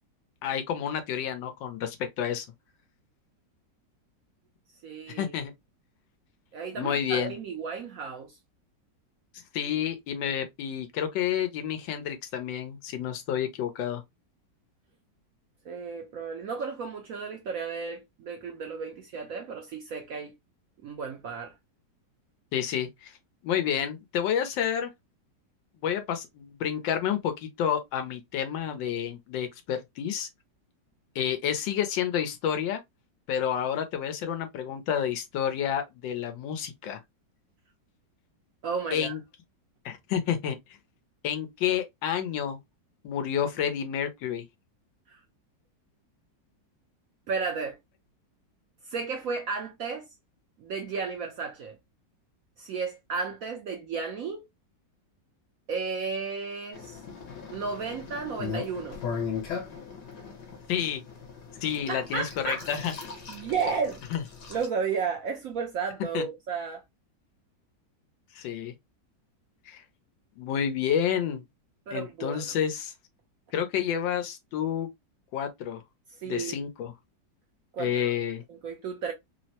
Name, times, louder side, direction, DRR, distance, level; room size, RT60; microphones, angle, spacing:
voice 1, 0.4-2.5 5.1-5.5 6.7-7.3 9.5-14.0 22.5-23.1 23.4-24.9 25.8-30.3 31.1-32.8 33.3-37.0 38.9-39.2 39.8-40.6 41.2-42.6 43.0-44.5 60.7-61.0 61.6-62.9 64.1-64.2 66.1-66.3 68.3-68.7 69.7-69.8 70.4-71.4 71.9-72.9 73.5-74.9 75.3-75.8 76.2-76.9 77.8-78.4, left 9 dB, 85° left, 1.4 m, -29 dB
voice 2, 4.8-5.3 6.5-8.3 15.7-20.3 20.8-21.5 38.6-39.1 47.3-47.8 48.9-50.0 50.6-51.8 52.6-54.4 55.7-57.0 57.5-59.0 61.9-62.7 63.3-64.0 64.5-66.8 71.9-72.4 76.2-76.6 77.7-77.9 78.5-79.1, right 5 dB, 70° right, 0.8 m, -33 dB
sound 1, 56.7-64.7, left 6 dB, 70° left, 1.4 m, -38 dB
3.5 x 2.1 x 2.6 m
omnidirectional pair, 2.0 m